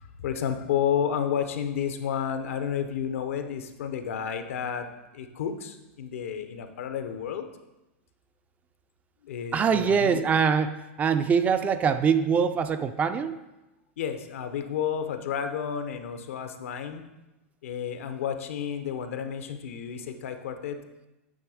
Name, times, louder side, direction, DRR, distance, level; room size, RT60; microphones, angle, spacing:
voice 1, 0.0-4.9 5.1-7.5 9.2-10.3 14.0-17.0 17.6-20.8, left 8 dB, 80° left, 8 dB, 0.7 m, -31 dB
voice 2, 9.5-13.4, right 6 dB, 20° right, 10 dB, 0.4 m, -23 dB
8.9 x 3.4 x 4.8 m, 0.99 s
hypercardioid pair, 125°, 7 cm